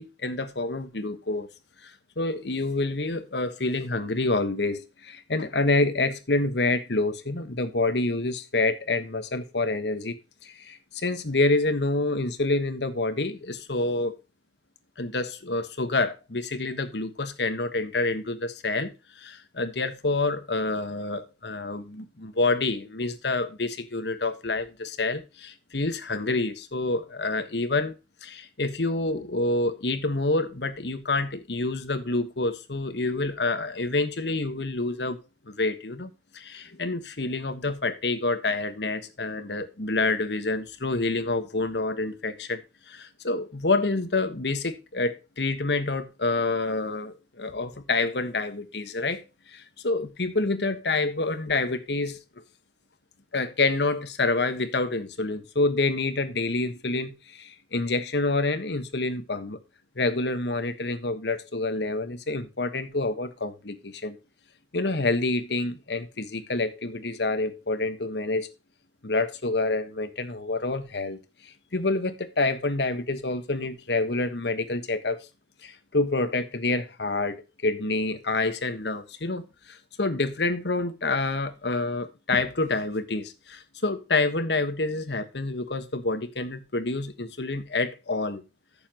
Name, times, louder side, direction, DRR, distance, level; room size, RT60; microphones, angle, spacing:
voice 1, 0.0-1.5 1.8-10.2 10.4-14.2 15.0-27.9 28.2-35.2 35.5-42.6 42.9-52.2 53.3-59.6 59.9-64.2 64.7-68.5 69.0-75.2 75.6-88.4, left 2 dB, 80° left, 1.4 m, -27 dB
14.0 x 7.0 x 3.0 m
head